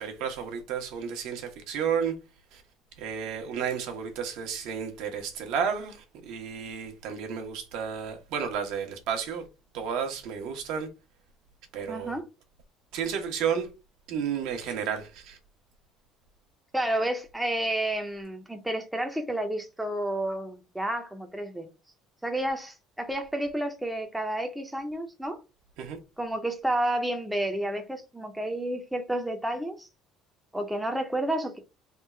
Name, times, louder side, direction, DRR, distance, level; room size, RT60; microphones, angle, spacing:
voice 1, 0.0-2.1 2.5-2.6 3.0-9.4 9.7-10.9 11.7-12.2 12.9-13.7 14.1-15.4 25.8-26.0, right 7 dB, 70° right, 1.1 m, -32 dB
voice 2, 11.9-12.2 16.7-21.7 22.2-25.4 26.2-29.9 30.5-31.6, right 1 dB, 5° right, 0.6 m, -30 dB
3.6 x 2.4 x 4.3 m
cardioid pair, 165°, 0 cm